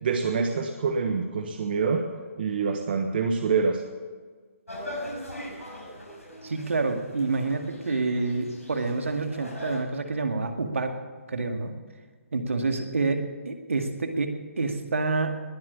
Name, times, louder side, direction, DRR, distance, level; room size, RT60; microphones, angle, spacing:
voice 1, 0.0-2.0 2.4-3.8, right 5 dB, 45° right, 5 dB, 1.3 m, -26 dB
sound 1, 4.7-9.8, left 1 dB, 90° left, 5.8 m, -40 dB
voice 2, 6.4-10.9 11.3-11.8 12.3-15.4, right 3 dB, 70° right, 5 dB, 2.0 m, -28 dB
21.0 x 7.8 x 8.6 m, 1.5 s
figure-of-eight pair, 140°, 7 cm